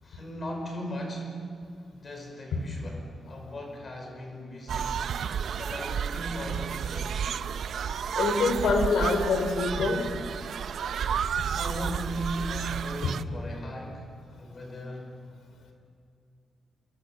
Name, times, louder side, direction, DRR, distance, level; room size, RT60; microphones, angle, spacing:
voice 1, 0.0-1.6 1.9-7.6 11.5-15.3, equal, 30° left, 2 dB, 5.3 m, -38 dB
sound 1, 4.7-13.2, right 7 dB, 65° right, 0.6 m, -31 dB
voice 2, 8.2-10.0 13.0-13.1, left 4 dB, 85° left, 5 dB, 4.2 m, -25 dB
27.5 x 22.5 x 7.4 m, 2.4 s
wide cardioid pair, 165°, 0 cm